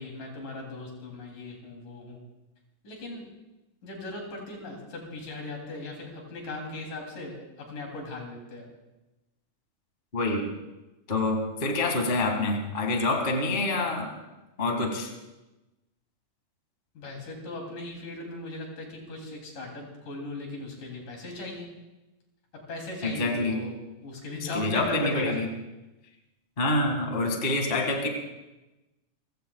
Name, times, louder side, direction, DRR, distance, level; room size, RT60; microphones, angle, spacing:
voice 1, 0.0-2.2 2.8-3.3 3.8-8.7 16.9-21.7 22.5-25.4, left 2 dB, 65° left, 0 dB, 4.6 m, -38 dB
voice 2, 10.1-10.4 11.1-14.1 14.6-15.1 23.0-23.6 24.5-25.5 26.6-28.1, left 2 dB, 20° left, 3 dB, 1.6 m, -26 dB
29.0 x 16.0 x 2.4 m, 1.0 s
omnidirectional pair, 4.0 m